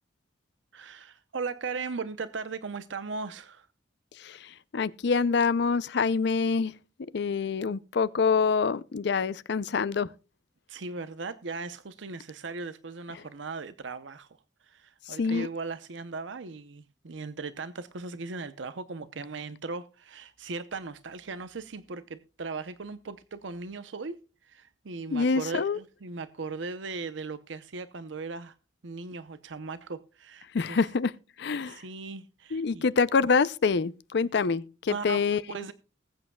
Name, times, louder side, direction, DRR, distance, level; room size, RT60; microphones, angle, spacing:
voice 1, 0.7-3.7 10.7-14.4 14.6-24.2 24.4-28.5 28.8-30.8 31.6-32.9 34.9-35.2 35.5-35.7, right 4 dB, 80° right, 0.7 m, -38 dB
voice 2, 4.2-6.7 7.1-10.1 15.1-15.5 25.1-25.8 30.5-31.1 31.4-31.8 32.5-35.4, left 5 dB, 65° left, 0.5 m, -26 dB
20.0 x 8.5 x 2.3 m
head